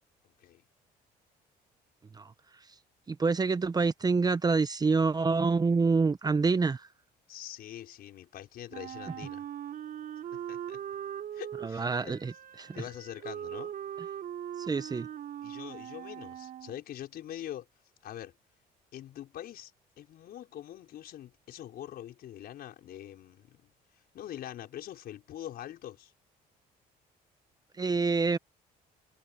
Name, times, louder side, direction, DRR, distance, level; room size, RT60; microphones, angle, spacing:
voice 1, 0.2-0.6 7.3-9.5 10.3-10.8 11.3-12.2 12.7-13.7 15.4-17.7 18.0-18.3 18.9-19.7 20.0-23.7 24.1-26.1, left 11 dB, 65° left, 5.4 m, -44 dB
voice 2, 3.1-6.9 11.6-12.3 12.6-12.8 14.7-15.1 27.8-28.4, right 4 dB, 25° right, 0.8 m, -27 dB
Wind instrument woodwind instrument, 8.7-16.8, right 10 dB, 60° right, 3.1 m, -41 dB
cardioid pair, 110°, 17 cm